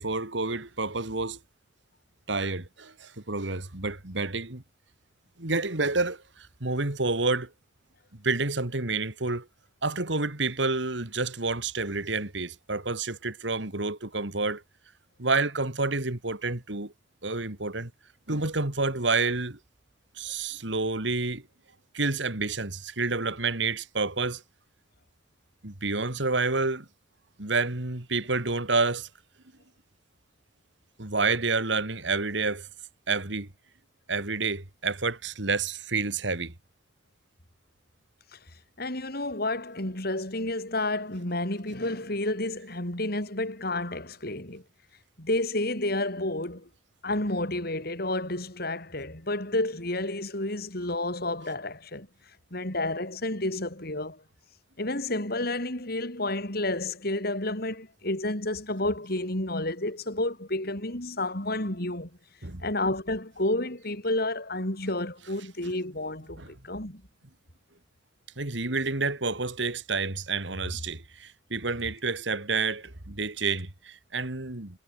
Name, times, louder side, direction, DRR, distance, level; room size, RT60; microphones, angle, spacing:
voice 1, 0.0-1.4 2.3-4.6 5.4-7.5 8.2-9.5 9.8-14.6 15.2-16.9 17.2-17.9 18.3-19.6 20.2-21.4 21.9-24.4 25.6-26.9 27.4-29.1 31.0-32.7 33.1-33.5 34.1-36.5 62.4-62.7 66.4-66.5 68.4-74.8, right 3 dB, 75° right, 2.6 m, -29 dB
voice 2, 38.8-44.6 45.2-46.7 47.0-52.1 52.5-54.2 54.8-62.1 62.6-67.0, left 2 dB, 55° left, 5.4 m, -30 dB
head